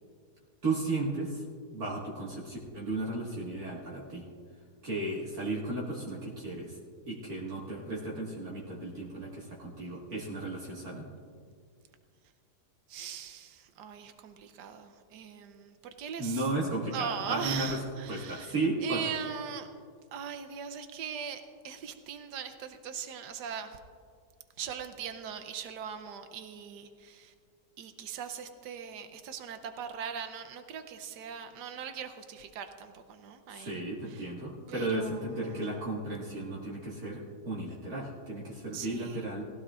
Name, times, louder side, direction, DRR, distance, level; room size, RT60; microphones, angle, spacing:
voice 1, 0.6-1.4 1.7-4.2 4.8-6.8 7.1-11.1 16.2-17.7 18.1-19.0 33.5-39.4, right 2 dB, 60° right, -6 dB, 2.4 m, -34 dB
voice 2, 12.9-16.5 16.9-19.7 20.1-23.8 24.6-27.3 27.8-34.3 34.7-35.8 38.7-39.3, right 7 dB, 85° right, 8 dB, 1.4 m, -40 dB
19.5 x 16.0 x 2.5 m, 2.1 s
omnidirectional pair, 1.8 m